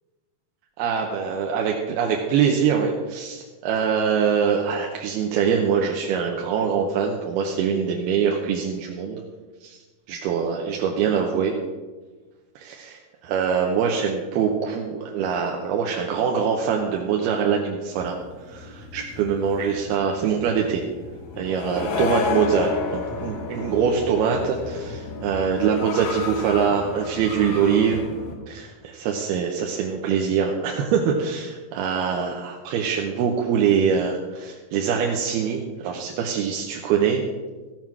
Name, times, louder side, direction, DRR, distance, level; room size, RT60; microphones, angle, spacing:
voice 1, 0.8-9.2 9.6-9.8 10.1-11.5 12.6-18.2 18.5-20.8 21.4-28.0 28.5-37.2, right 7 dB, 75° right, 1 dB, 2.6 m, -23 dB
sound 1, 18.0-28.4, left 5 dB, 65° left, 2.7 m, -32 dB
14.5 x 7.5 x 6.0 m, 1.3 s
omnidirectional pair, 5.0 m